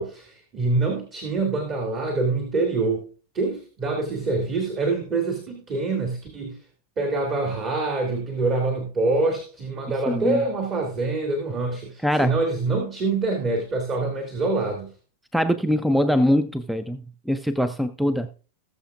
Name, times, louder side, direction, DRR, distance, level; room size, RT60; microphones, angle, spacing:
voice 1, 0.0-3.1 3.3-6.6 7.0-14.9, right 3 dB, 30° right, 2 dB, 2.3 m, -25 dB
voice 2, 10.1-10.4 12.0-12.3 15.3-18.3, equal, ahead, 13 dB, 0.6 m, -22 dB
19.0 x 7.1 x 2.4 m, 0.38 s
figure-of-eight pair, 90°, 0 cm